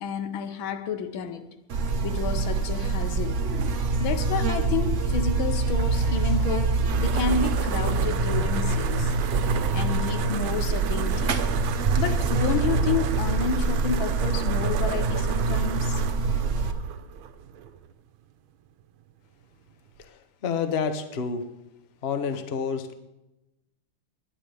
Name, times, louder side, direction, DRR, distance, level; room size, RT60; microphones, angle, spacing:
voice 1, 0.0-1.5 2.0-3.4 4.0-9.2 9.7-11.4 12.0-16.0, left 6 dB, 80° left, 1.7 m, -30 dB
Buzz, 1.7-16.7, right 3 dB, 50° right, 1.0 m, -25 dB
sound 1, 6.6-17.9, right 9 dB, 85° right, 1.6 m, -35 dB
voice 2, 20.4-21.4 22.0-22.9, left 6 dB, 40° left, 0.9 m, -28 dB
20.5 x 10.0 x 3.4 m
omnidirectional pair, 2.2 m